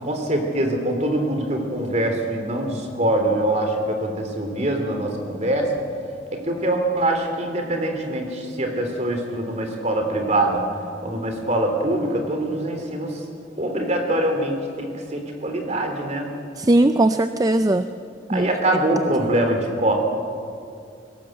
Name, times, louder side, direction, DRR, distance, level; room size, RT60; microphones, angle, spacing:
voice 1, 0.0-5.7 6.3-10.6 11.0-13.2 13.6-16.3 18.3-19.9, right 1 dB, 40° right, 3 dB, 3.4 m, -23 dB
voice 2, 16.6-17.8 18.3-18.5, right 1 dB, 20° right, 10 dB, 0.5 m, -18 dB
22.0 x 18.0 x 7.8 m, 2.4 s
head